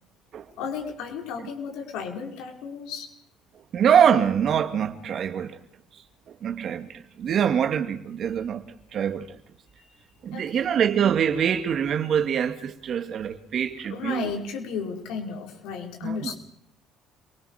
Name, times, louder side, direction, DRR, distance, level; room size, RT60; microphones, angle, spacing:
voice 1, 0.6-3.1 9.8-9.9 10.3-10.7 13.9-16.4, left 6 dB, 80° left, 5.6 m, -34 dB
voice 2, 3.7-5.6 6.4-9.4 10.2-14.3 16.0-16.3, right 8 dB, 50° right, 2.3 m, -24 dB
28.0 x 19.5 x 5.1 m
cardioid pair, 100°, 0 cm